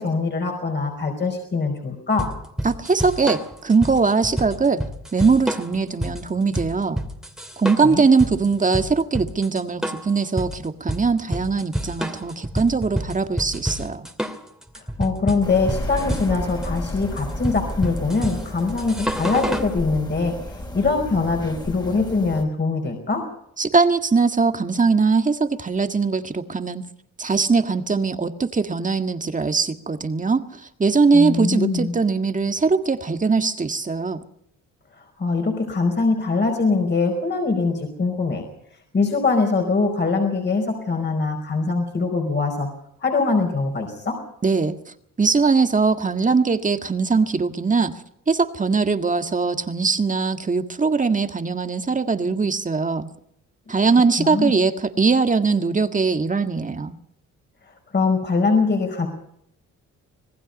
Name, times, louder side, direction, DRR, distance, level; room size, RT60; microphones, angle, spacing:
voice 1, 0.0-2.3 7.8-8.0 14.7-23.2 31.1-31.9 35.0-38.5 38.9-42.7 43.0-44.2 54.2-54.5 57.9-59.1, left 4 dB, 35° left, 3 dB, 4.8 m, -23 dB
sound 1, 2.2-19.7, equal, ahead, 2.7 m, -29 dB
voice 2, 2.6-4.8 5.1-7.0 7.6-14.1 23.6-26.8 27.2-34.2 44.4-44.8 45.2-47.9 48.3-53.1 53.7-57.0, right 4 dB, 25° right, 8 dB, 1.8 m, -21 dB
sound 2, 15.4-22.4, left 1 dB, 15° left, 3.9 m, -32 dB
26.5 x 18.5 x 5.4 m, 0.73 s
cardioid pair, 90°, 30 cm